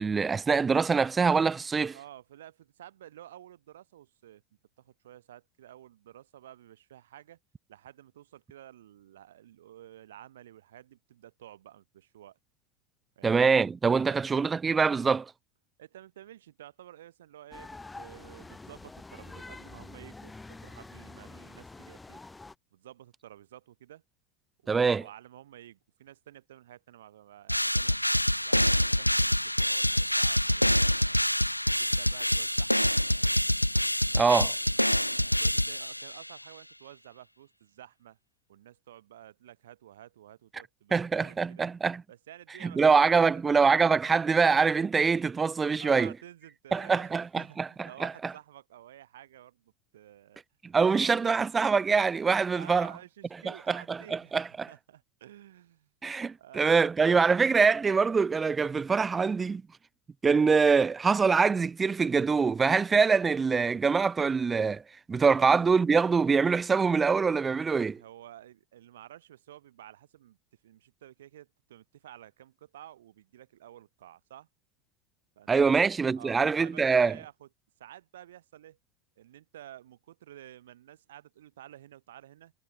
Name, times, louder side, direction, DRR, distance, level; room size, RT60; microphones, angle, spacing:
voice 1, 0.0-1.9 13.2-15.3 24.7-25.0 34.1-34.5 40.9-42.0 42.6-46.1 46.7-48.3 50.6-52.9 53.7-54.7 56.0-59.6 60.2-64.8 65.1-68.0 75.5-77.2, right 5 dB, 15° right, 0.3 m, -24 dB
voice 2, 1.9-4.4 4.8-7.4 7.7-12.4 13.2-13.4 14.1-14.2 15.8-22.2 22.7-24.0 24.6-30.9 31.6-32.9 34.1-38.2 38.5-41.6 42.1-43.8 45.8-50.4 50.8-51.4 52.5-54.4 54.7-55.9 56.4-56.8 65.3-65.5 68.0-70.4 70.6-74.5 75.4-75.9 76.2-77.5 77.8-78.8 79.2-82.5, right 12 dB, 65° right, 6.4 m, -51 dB
sound 1, 17.5-22.5, left 3 dB, 10° left, 1.4 m, -46 dB
sound 2, 27.5-36.3, equal, 90° left, 0.4 m, -26 dB
figure-of-eight pair, 85°, 0 cm